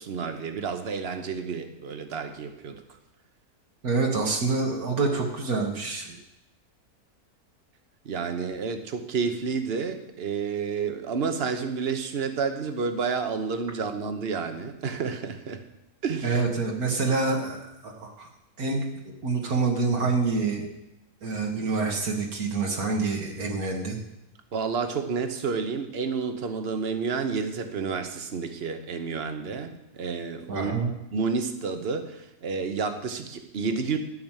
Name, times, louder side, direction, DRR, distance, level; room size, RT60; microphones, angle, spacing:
voice 1, 0.0-2.8 8.0-15.6 16.0-16.4 24.5-34.0, right 5 dB, 45° right, 8 dB, 1.2 m, -30 dB
voice 2, 3.8-6.2 16.2-18.3 18.6-18.9 19.2-20.7 21.2-24.0 30.5-30.9, right 4 dB, 75° right, 0 dB, 2.0 m, -27 dB
12.0 x 6.1 x 9.0 m, 0.88 s
omnidirectional pair, 1.6 m